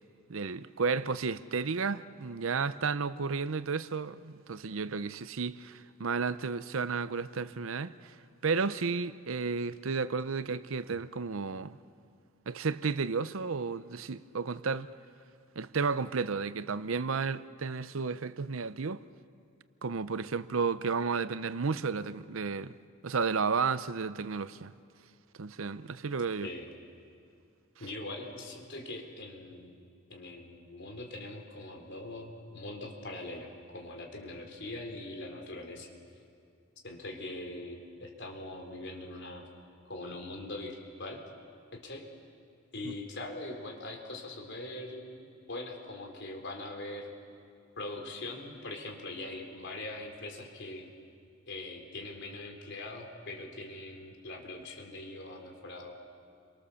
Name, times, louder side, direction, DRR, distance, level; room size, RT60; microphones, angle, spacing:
voice 1, 0.3-8.1 8.4-11.8 12.5-14.9 15.6-19.0 19.8-22.8 23.0-24.7 25.4-26.5 42.8-42.9, right 5 dB, 75° right, 0.7 m, -32 dB
voice 2, 27.8-29.8 30.1-35.9 36.8-39.5 39.8-41.2 41.7-42.1 42.7-47.1 47.8-50.9 51.5-55.9, left 2 dB, 60° left, 3.6 m, -42 dB
29.5 x 24.0 x 7.0 m
head